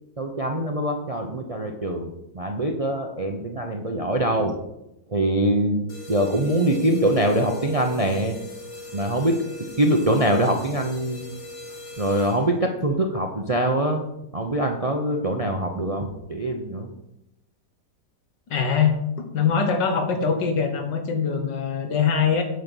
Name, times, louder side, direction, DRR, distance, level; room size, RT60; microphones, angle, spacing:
voice 1, 0.2-4.6 5.1-8.4 8.9-9.4 9.8-11.2 12.0-14.0 14.3-16.9, right 1 dB, 40° right, 3 dB, 0.5 m, -23 dB
sound 1, 5.9-12.7, left 2 dB, 55° left, 3.0 m, -38 dB
voice 2, 18.5-22.4, left 6 dB, 85° left, 5 dB, 2.0 m, -23 dB
9.4 x 5.3 x 6.3 m, 0.87 s
omnidirectional pair, 1.9 m